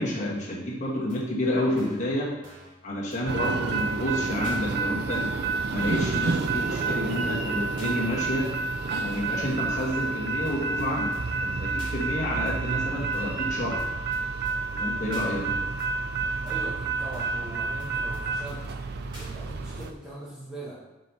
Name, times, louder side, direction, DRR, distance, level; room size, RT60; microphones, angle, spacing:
voice 1, 0.0-2.3 2.8-5.3 5.7-8.5 8.9-11.1 11.4-13.8 14.7-15.7, left 1 dB, 40° left, -4 dB, 1.4 m, -29 dB
sound 1, 1.1-1.2 1.8-2.1 2.4-2.8 3.1-3.2 3.4-3.5 3.8-3.9 4.4-4.6 5.1-5.2 5.8-6.1 6.4-6.5 6.8-6.9 7.1-7.2 7.8-7.9 8.4-8.5 9.1-9.4 9.8-10.1 10.4-10.5 10.8-10.9 11.1-11.2 11.8-12.0 12.5-12.6 13.1-13.4 13.8-13.9 14.1-14.2 14.5-14.6 15.1-15.3 15.8-15.9 16.5-16.8 17.1-17.5 17.8-17.9 18.1-18.2 18.5-18.6 19.1-19.3 19.8-19.9, equal, 25° right, 1.6 m, -48 dB
sound 2, 3.3-19.9, right 4 dB, 55° right, 0.5 m, -29 dB
sound 3, 7.1-8.6 8.9-13.7, right 1 dB, 90° right, 2.4 m, -44 dB
voice 2, 16.4-18.6 19.1-20.8, right 1 dB, 5° right, -9 dB, 1.3 m, -41 dB
5.2 x 4.6 x 5.4 m, 1.0 s
head